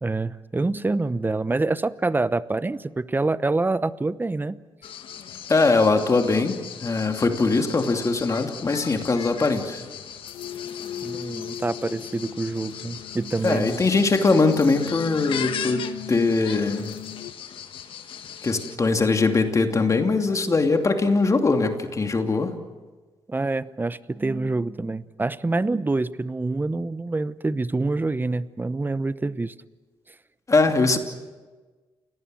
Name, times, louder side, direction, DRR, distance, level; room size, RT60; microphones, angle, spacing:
voice 1, 0.0-4.6 11.0-13.8 23.3-29.5, right 3 dB, 20° right, 16 dB, 0.9 m, -26 dB
sound 1, 4.8-18.8, left 9 dB, 70° left, 1.5 m, -38 dB
voice 2, 5.5-9.8 13.4-16.9 18.4-22.5 30.5-31.0, left 3 dB, 35° left, 5 dB, 2.7 m, -21 dB
sound 2, 8.6-17.3, left 10 dB, 90° left, 1.1 m, -39 dB
29.0 x 18.5 x 7.7 m, 1.3 s
supercardioid pair, 65°, 9 cm